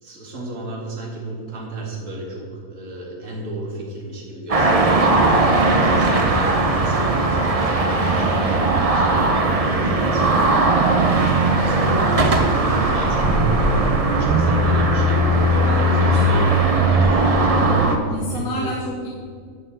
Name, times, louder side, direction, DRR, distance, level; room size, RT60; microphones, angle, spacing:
voice 1, 0.0-5.5 5.8-6.5 6.7-11.1 11.6-13.7 14.1-16.5 16.9-18.7, right 1 dB, 60° right, -2 dB, 2.2 m, -33 dB
sound 1, 4.5-18.0, right 2 dB, 30° right, 0.7 m, -18 dB
voice 2, 15.2-16.4 18.1-19.1, left 2 dB, 85° left, 0 dB, 1.4 m, -30 dB
11.0 x 4.4 x 7.7 m, 2.1 s
omnidirectional pair, 1.5 m